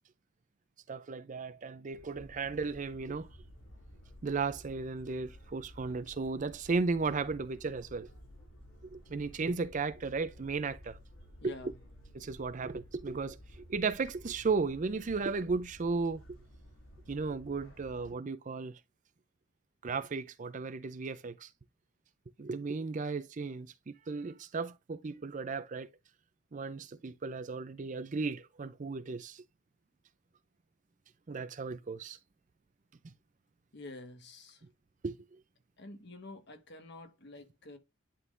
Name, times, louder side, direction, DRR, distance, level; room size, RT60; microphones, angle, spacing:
voice 1, 0.9-3.3 4.2-8.1 8.8-11.0 12.1-13.4 13.7-16.2 17.1-18.7 19.8-21.5 22.4-25.9 26.5-29.4 31.3-32.2 35.0-35.2, right 4 dB, 40° right, 0.5 m, -35 dB
sound 1, 1.9-18.1, equal, 85° left, 2.8 m, -54 dB
voice 2, 11.4-11.8 33.7-34.6 35.8-37.8, left 2 dB, 55° left, 1.5 m, -48 dB
11.0 x 3.8 x 2.6 m
head